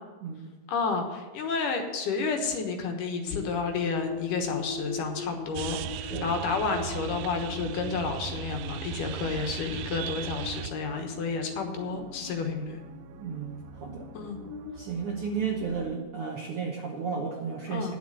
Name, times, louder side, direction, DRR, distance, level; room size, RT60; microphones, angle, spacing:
voice 1, 0.7-12.8 14.1-14.4 17.7-18.0, left 4 dB, 75° left, 4 dB, 2.8 m, -31 dB
sound 1, 3.2-14.7, left 5 dB, 30° left, 2.0 m, -41 dB
sound 2, 5.6-16.0, right 12 dB, 85° right, 2.2 m, -40 dB
voice 2, 13.2-14.1 14.8-18.0, right 5 dB, 65° right, 0 dB, 1.5 m, -33 dB
10.0 x 7.5 x 7.8 m, 1.2 s
omnidirectional pair, 3.9 m